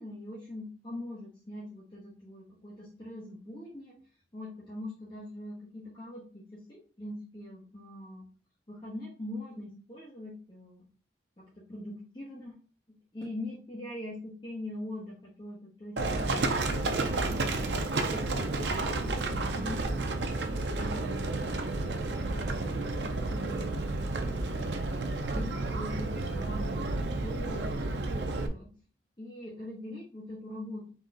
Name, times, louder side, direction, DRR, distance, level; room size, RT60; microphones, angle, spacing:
voice 1, 0.0-4.0 4.3-8.3 8.7-10.8 11.7-12.6 13.1-19.9 20.8-24.8 25.3-28.7 29.2-30.9, left 1 dB, 30° left, -6 dB, 1.2 m, -43 dB
Livestock farm animals working animals, 16.0-28.5, right 2 dB, 70° right, 0.6 m, -31 dB
4.1 x 3.1 x 3.7 m, 0.39 s
head